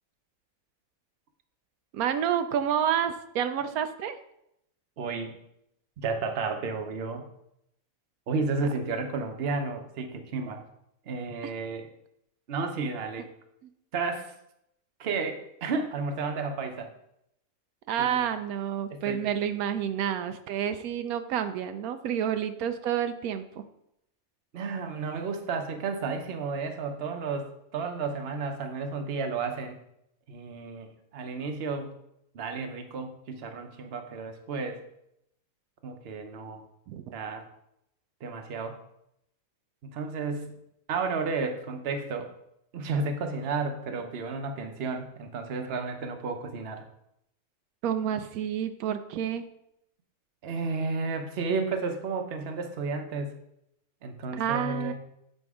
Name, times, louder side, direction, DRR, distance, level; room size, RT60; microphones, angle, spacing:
voice 1, 1.9-4.2 17.9-23.6 36.9-37.0 47.8-49.4 54.3-54.9, right 9 dB, 85° right, 9 dB, 1.0 m, -29 dB
voice 2, 5.0-5.4 6.0-7.2 8.3-10.6 11.1-11.9 12.5-13.3 13.9-14.3 15.0-16.9 18.0-18.2 18.9-19.2 24.5-29.8 30.3-31.9 32.3-34.8 35.8-36.6 37.1-37.5 38.2-38.8 39.8-40.6 40.9-42.3 42.7-46.8 50.4-53.3 54.0-54.9, right 4 dB, 50° right, 6 dB, 1.0 m, -32 dB
8.0 x 4.4 x 4.8 m, 0.78 s
omnidirectional pair, 1.5 m